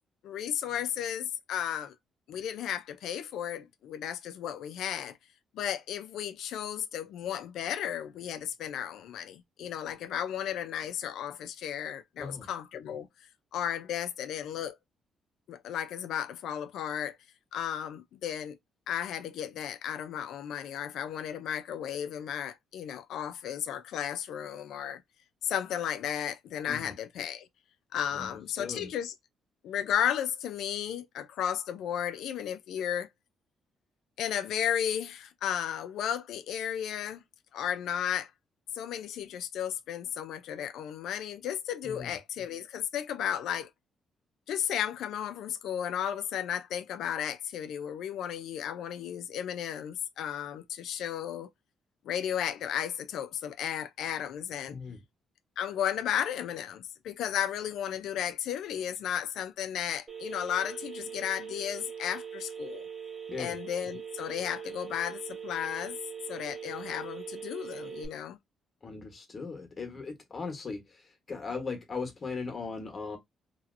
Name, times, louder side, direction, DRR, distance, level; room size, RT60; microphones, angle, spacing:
voice 1, 0.2-1.9 2.3-5.2 5.5-13.1 13.5-14.8 15.5-17.2 17.5-18.6 18.9-25.0 25.4-27.5 27.9-29.1 29.6-33.1 34.2-37.2 37.5-38.3 38.7-43.7 44.5-51.5 52.0-54.8 55.6-62.9 63.4-66.0 66.3-68.4, left 9 dB, 80° left, 0.4 m, -34 dB
voice 2, 28.6-28.9 41.8-42.2 54.7-55.0 63.3-63.6 68.8-73.2, left 4 dB, 35° left, 1.2 m, -38 dB
Telephone, 60.1-68.1, right 8 dB, 30° right, 1.7 m, -41 dB
3.0 x 2.8 x 2.5 m
cardioid pair, 90°, 0 cm